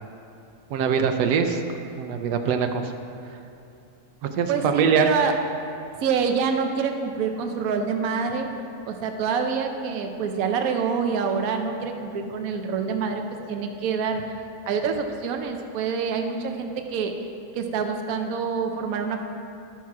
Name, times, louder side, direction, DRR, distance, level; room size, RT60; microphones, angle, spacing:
voice 1, 0.7-1.6 2.0-2.9 4.2-5.1, right 7 dB, 85° right, 6 dB, 1.2 m, -23 dB
voice 2, 4.5-5.4 6.0-8.5 8.9-13.2 13.5-14.2 14.7-17.1 17.5-19.2, right 5 dB, 65° right, 5 dB, 1.1 m, -26 dB
12.0 x 5.8 x 4.6 m, 2.7 s
omnidirectional pair, 1.7 m